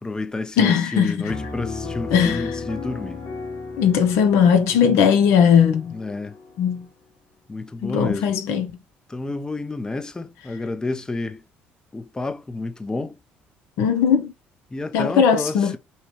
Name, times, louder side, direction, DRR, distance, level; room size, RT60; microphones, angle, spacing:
voice 1, 0.0-3.2 5.9-6.4 7.5-8.3 9.1-11.4 11.9-13.2 14.7-15.8, left 2 dB, 15° left, 0.5 m, -30 dB
voice 2, 0.6-1.3 2.1-2.6 3.8-6.0 6.6-6.9 7.8-8.7 13.8-14.3 14.9-15.8, left 7 dB, 80° left, 0.7 m, -18 dB
Piano, 1.3-6.8, left 4 dB, 55° left, 1.2 m, -34 dB
5.5 x 2.2 x 3.0 m
supercardioid pair, 75°, 4 cm